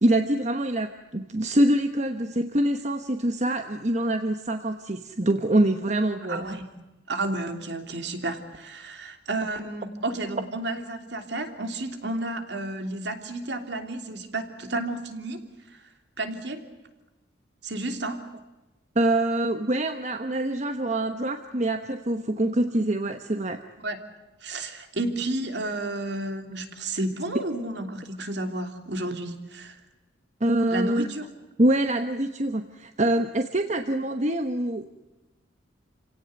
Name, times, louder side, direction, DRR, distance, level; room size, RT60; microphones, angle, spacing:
voice 1, 0.0-6.6 18.9-23.6 30.4-31.1 31.6-34.9, right 1 dB, 35° right, 7 dB, 1.1 m, -25 dB
voice 2, 6.3-6.7 7.1-15.4 15.7-15.8 16.2-16.7 17.6-18.3 23.8-24.0 24.4-29.8 30.7-31.3, right 2 dB, 60° right, 6 dB, 3.1 m, -31 dB
28.5 x 17.5 x 9.6 m, 1.1 s
head